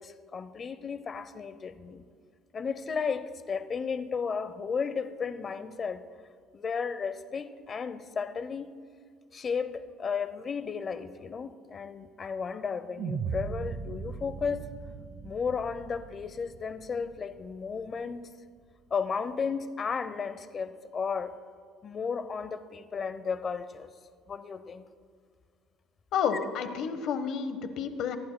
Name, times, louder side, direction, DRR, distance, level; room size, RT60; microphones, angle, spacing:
voice 1, 0.0-2.0 2.5-6.0 6.5-8.7 9.3-14.7 15.2-18.2 18.9-21.3 21.8-23.9 24.3-24.9, left 5 dB, 35° left, 12 dB, 0.7 m, -34 dB
sound 1, 13.0-17.3, right 5 dB, 50° right, 0.9 m, -38 dB
voice 2, 26.1-28.2, left 7 dB, 60° left, 10 dB, 1.1 m, -30 dB
25.0 x 11.5 x 2.2 m, 2.1 s
cardioid pair, 115°, 0 cm